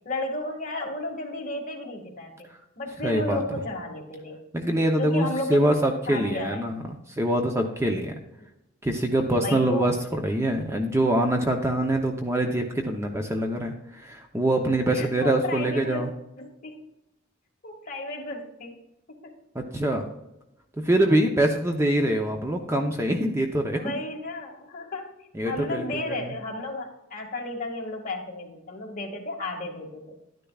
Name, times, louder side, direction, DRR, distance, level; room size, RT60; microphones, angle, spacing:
voice 1, 0.1-2.3 2.8-4.4 5.0-5.6 6.1-6.7 9.4-9.9 14.9-16.0 16.4-16.8 17.6-18.8 19.1-19.3 23.7-25.1 25.4-30.1, left 2 dB, 40° left, 0 dB, 2.0 m, -33 dB
voice 2, 3.0-3.4 4.5-6.8 7.1-8.1 8.8-16.1 19.5-20.1 20.8-23.8 25.3-26.3, right 1 dB, 15° right, 3 dB, 0.7 m, -24 dB
11.5 x 10.0 x 2.4 m, 0.88 s
head